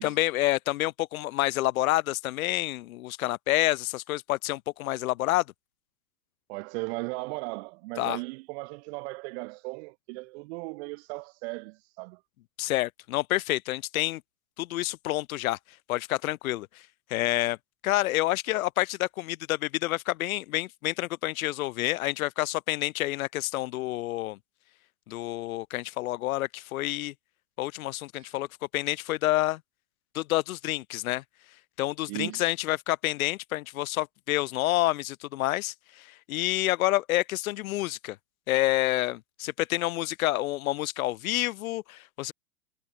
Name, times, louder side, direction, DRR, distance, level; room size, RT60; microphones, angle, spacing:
voice 1, 0.0-5.4 8.0-8.2 12.6-14.2 14.6-15.6 15.9-16.7 17.1-17.6 17.8-24.4 25.1-27.1 27.6-28.5 28.7-29.6 30.1-31.2 31.8-38.2 38.5-42.3, left 17 dB, 65° left, 1.0 m, -28 dB
voice 2, 6.5-12.2 28.2-28.3 32.1-32.5, right 28 dB, 45° right, 1.5 m, -37 dB
supercardioid pair, 145°, 46 cm